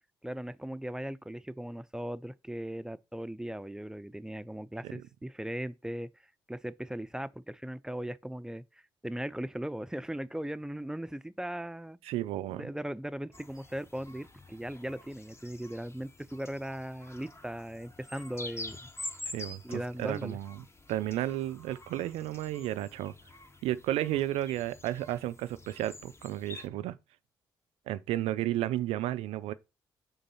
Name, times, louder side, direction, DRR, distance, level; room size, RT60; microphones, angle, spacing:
voice 1, 0.2-6.1 6.5-8.6 9.0-12.0 12.5-18.9 19.6-20.4, right 1 dB, 5° right, 0.5 m, -38 dB
voice 2, 12.1-12.6 19.3-23.1 23.6-27.0 27.9-29.5, right 14 dB, 80° right, 0.4 m, -33 dB
sound 1, 13.3-26.7, left 2 dB, 25° left, 0.9 m, -47 dB
5.2 x 3.8 x 5.6 m
supercardioid pair, 50°, 10 cm